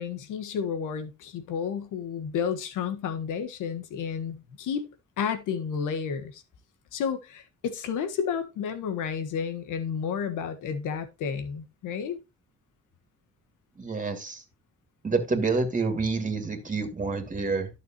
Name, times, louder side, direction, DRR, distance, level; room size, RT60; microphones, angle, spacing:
voice 1, 0.0-4.9 5.2-6.4 6.9-12.2, left 7 dB, 90° left, 1.6 m, -31 dB
voice 2, 13.8-14.4 15.0-17.7, right 4 dB, 25° right, 2.5 m, -28 dB
11.5 x 6.7 x 3.0 m
cardioid pair, 90°, 30 cm